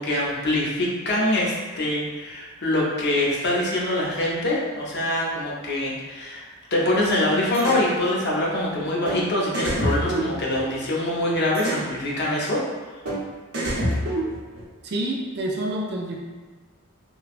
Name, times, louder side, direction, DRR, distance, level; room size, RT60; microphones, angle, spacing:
voice 1, 0.0-6.4 6.7-12.6, left 1 dB, 50° left, -4 dB, 0.6 m, -24 dB
sound 1, 7.5-7.9 9.0-9.2 9.5-10.9 11.5-11.9 13.0-13.2 13.5-14.6, right 1 dB, 80° right, 0.9 m, -26 dB
voice 2, 14.8-16.2, right 1 dB, 50° right, 0 dB, 0.4 m, -28 dB
3.1 x 2.1 x 2.4 m, 1.3 s
head